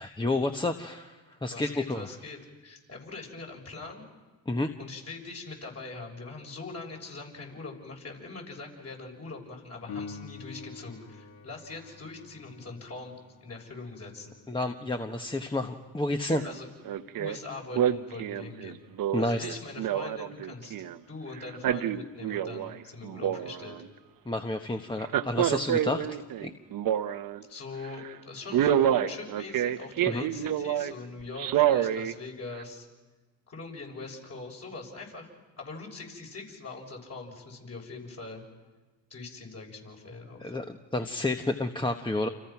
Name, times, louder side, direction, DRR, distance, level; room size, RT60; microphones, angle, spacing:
voice 1, 0.0-2.1 4.5-4.7 14.5-16.4 19.1-19.6 24.2-26.5 30.1-30.3 40.4-42.3, left 2 dB, 15° left, 5 dB, 1.2 m, -30 dB
voice 2, 1.5-4.1 4.8-13.1 13.4-14.3 16.4-16.7 17.2-18.8 19.1-23.8 27.5-32.9 33.5-35.3 35.6-38.4 39.1-40.6, left 3 dB, 40° left, 0 dB, 7.2 m, -42 dB
Piano, 9.9-20.3 27.8-27.9, left 5 dB, 80° left, 2.1 m, -49 dB
Male speech man speaking, 16.3-16.5 16.9-17.4 17.8-21.0 21.4-22.8 23.0-23.9 25.0-27.4 27.8-28.1 28.5-30.9 31.4-32.1 32.6-32.7, right 10 dB, 60° right, 1.1 m, -27 dB
29.0 x 28.0 x 6.0 m, 1.2 s
supercardioid pair, 80°, 38 cm